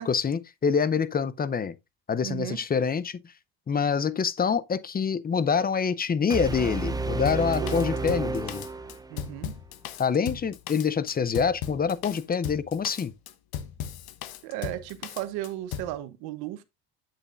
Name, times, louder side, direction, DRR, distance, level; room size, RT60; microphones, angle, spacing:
voice 1, 0.0-1.8 2.1-3.2 3.7-8.6 10.0-13.1, left 6 dB, 25° left, 0.6 m, -26 dB
voice 2, 2.2-2.6 7.6-7.8 8.1-8.3 9.1-9.6 14.4-16.6, right 14 dB, 85° right, 1.0 m, -35 dB
sound 1, 6.3-9.4, right 3 dB, 10° right, 0.7 m, -31 dB
Drum kit, 7.3-15.9, left 9 dB, 80° left, 1.1 m, -37 dB
8.4 x 6.7 x 2.5 m
cardioid pair, 95°, 36 cm